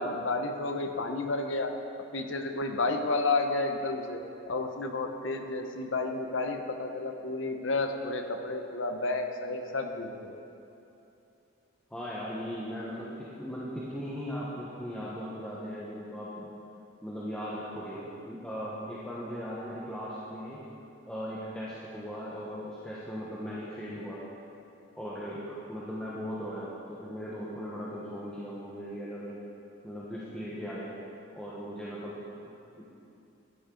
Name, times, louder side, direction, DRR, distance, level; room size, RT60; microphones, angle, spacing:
voice 1, 0.0-1.7 2.1-10.4, left 3 dB, 60° left, 5 dB, 0.8 m, -31 dB
voice 2, 11.9-16.5 17.0-20.6 21.1-24.2 25.0-29.4 29.8-30.9 31.3-32.9, equal, 5° left, -8 dB, 1.0 m, -38 dB
13.0 x 10.0 x 3.8 m, 2.8 s
head